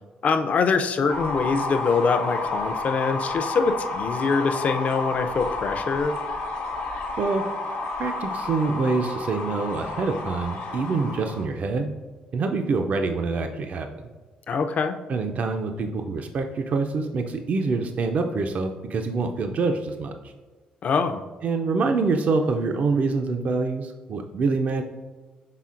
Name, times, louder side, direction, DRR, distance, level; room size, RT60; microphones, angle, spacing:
voice 1, 0.2-6.2 14.5-15.0 20.8-21.2, left 5 dB, 50° left, 7 dB, 0.4 m, -24 dB
sound 1, 1.1-11.4, left 2 dB, 85° left, 0.9 m, -30 dB
voice 2, 8.0-11.9 12.3-13.9 15.1-20.3 21.4-24.8, right 4 dB, 55° right, 5 dB, 0.4 m, -25 dB
5.7 x 3.6 x 2.4 m, 1.3 s
cardioid pair, 80°, 3 cm